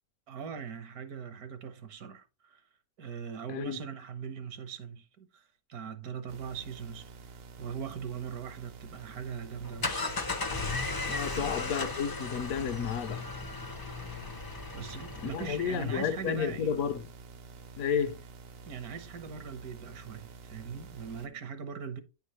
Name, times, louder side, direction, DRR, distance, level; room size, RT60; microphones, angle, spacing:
voice 1, 0.3-2.6 3.0-10.2 11.3-11.5 14.7-16.8 18.7-22.0, right 6 dB, 75° right, 1.5 m, -41 dB
voice 2, 3.5-3.8 11.0-13.3 15.2-17.1 17.8-18.2, left 7 dB, 70° left, 1.1 m, -32 dB
sound 1, 6.3-21.3, right 4 dB, 55° right, 0.7 m, -49 dB
sound 2, 9.5-15.9, left 3 dB, 30° left, 0.3 m, -36 dB
9.3 x 4.6 x 3.0 m
omnidirectional pair, 1.6 m